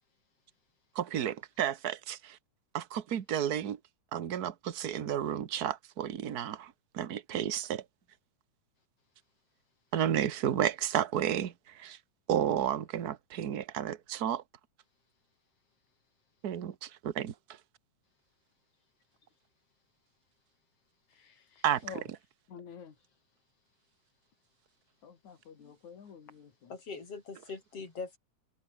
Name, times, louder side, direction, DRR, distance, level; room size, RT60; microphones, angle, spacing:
voice 1, 0.9-2.4 2.7-3.8 4.1-7.8 9.9-12.0 12.3-14.4 16.4-17.3 21.6-22.2, right 10 dB, 50° right, 1.2 m, -32 dB
voice 2, 21.1-22.0 22.5-22.9 25.0-26.7, left 7 dB, 75° left, 4.3 m, -49 dB
voice 3, 26.7-28.2, left 4 dB, 55° left, 5.1 m, -42 dB
omnidirectional pair, 3.4 m